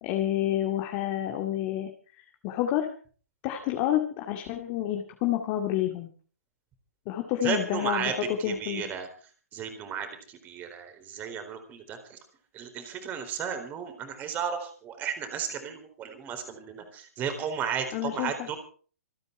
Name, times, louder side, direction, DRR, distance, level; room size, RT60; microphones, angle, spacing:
voice 1, 0.0-1.9 2.2-2.9 3.4-6.1 7.1-8.8 17.9-18.3, left 12 dB, 30° left, 4 dB, 2.2 m, -29 dB
voice 2, 7.4-9.1 9.5-12.2 12.5-18.6, right 7 dB, 20° right, 8 dB, 4.1 m, -34 dB
26.5 x 9.7 x 4.6 m, 0.41 s
figure-of-eight pair, 120°, 8 cm